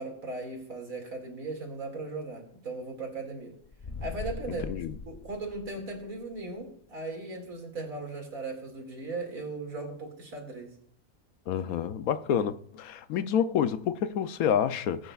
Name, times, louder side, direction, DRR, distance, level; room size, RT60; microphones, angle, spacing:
voice 1, 0.0-3.5 4.0-4.8 5.1-10.7, right 3 dB, 70° right, 2.7 m, -38 dB
sound 1, 3.6-6.1, left 4 dB, 35° left, 0.7 m, -40 dB
voice 2, 11.5-15.1, left 8 dB, 80° left, 1.1 m, -28 dB
19.5 x 9.2 x 2.4 m
omnidirectional pair, 1.5 m